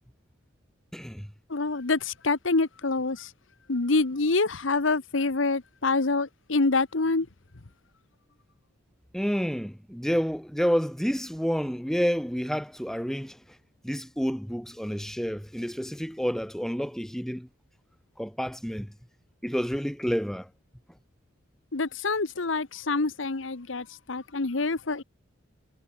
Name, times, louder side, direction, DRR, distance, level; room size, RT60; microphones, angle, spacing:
voice 1, 0.9-1.3 9.1-13.4 13.8-17.5 18.2-18.9 19.4-20.5, equal, ahead, 1.6 m, -29 dB
voice 2, 1.5-3.3 3.7-7.3 21.7-25.0, left 3 dB, 75° left, 1.1 m, -26 dB
head